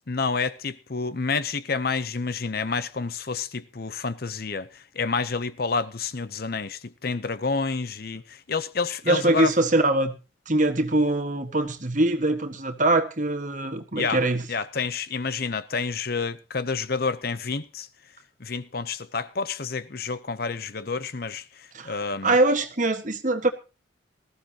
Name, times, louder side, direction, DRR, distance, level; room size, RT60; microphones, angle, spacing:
voice 1, 0.1-9.5 14.0-14.2 14.5-17.9 18.4-22.3, left 4 dB, 50° left, 0.7 m, -29 dB
voice 2, 9.1-10.1 10.5-14.4 21.7-23.5, right 2 dB, 40° right, 1.6 m, -23 dB
19.5 x 14.5 x 2.9 m
head